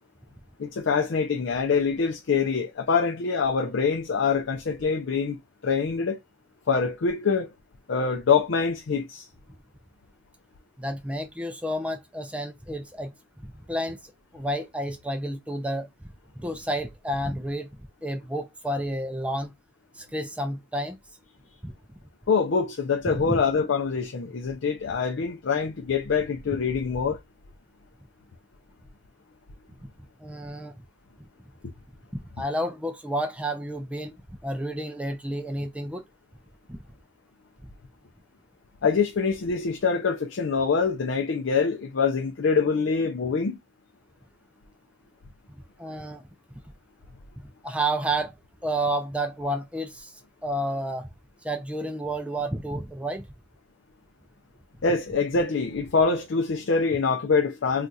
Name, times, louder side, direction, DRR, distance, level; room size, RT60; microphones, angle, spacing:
voice 1, 0.6-5.4 5.6-6.2 6.7-7.5 7.9-9.3 22.3-27.2 38.8-43.6 54.8-57.9, left 5 dB, 75° left, 0.5 m, -25 dB
voice 2, 10.8-13.1 13.4-15.9 16.4-17.7 18.0-19.5 20.0-21.0 21.6-21.7 23.2-23.4 30.2-30.7 32.1-34.1 34.4-36.0 36.7-36.8 45.8-46.2 47.4-48.4 48.6-51.1 51.4-53.3, right 1 dB, 5° right, 0.3 m, -30 dB
4.0 x 2.4 x 2.3 m
head